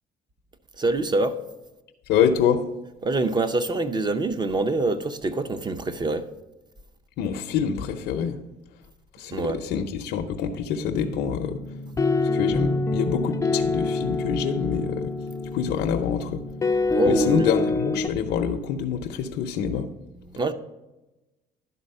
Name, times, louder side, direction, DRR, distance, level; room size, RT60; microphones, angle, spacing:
voice 1, 0.8-1.4 3.0-6.3 9.3-9.6 16.9-17.5 20.3-20.5, right 2 dB, 25° right, 0.6 m, -25 dB
voice 2, 2.1-2.6 7.2-8.4 9.2-11.6 12.3-15.1 15.5-16.4 17.0-19.9, left 7 dB, 75° left, 0.6 m, -26 dB
sound 1, 10.9-18.1, left 3 dB, 20° left, 0.4 m, -26 dB
11.0 x 4.1 x 5.4 m
cardioid pair, 110°, 17 cm